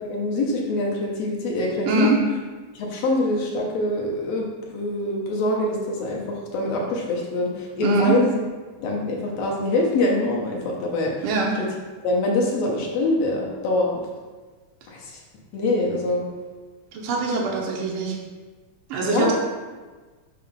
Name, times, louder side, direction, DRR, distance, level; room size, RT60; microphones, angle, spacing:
voice 1, 0.0-2.1 2.8-8.3 8.8-11.1 12.0-14.0 14.9-15.2 15.5-16.2 19.0-19.3, left 2 dB, 70° left, -2 dB, 1.8 m, -24 dB
voice 2, 1.8-2.2 7.8-8.1 11.2-11.5 16.9-18.1 18.9-19.3, right 4 dB, 70° right, -2 dB, 1.3 m, -23 dB
6.7 x 3.0 x 5.3 m, 1.4 s
omnidirectional pair, 3.3 m